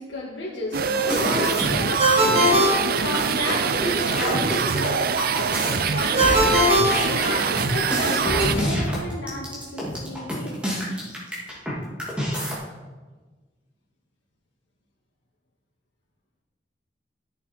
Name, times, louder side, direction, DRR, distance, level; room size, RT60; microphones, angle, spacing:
voice 1, 0.0-2.6 3.0-5.2 5.9-6.6 7.0-10.6, left 1 dB, 90° left, -7 dB, 2.0 m, -32 dB
sound 1, 0.7-8.6, right 6 dB, 55° right, 0.5 m, -24 dB
sound 2, 0.9-2.1 2.5-2.6 2.8-11.7 12.0-12.5, equal, 5° right, 2.5 m, -27 dB
Ringtone, 2.0-3.7 6.2-7.8, equal, 35° right, 1.9 m, -21 dB
13.0 x 7.2 x 4.5 m, 1.3 s
head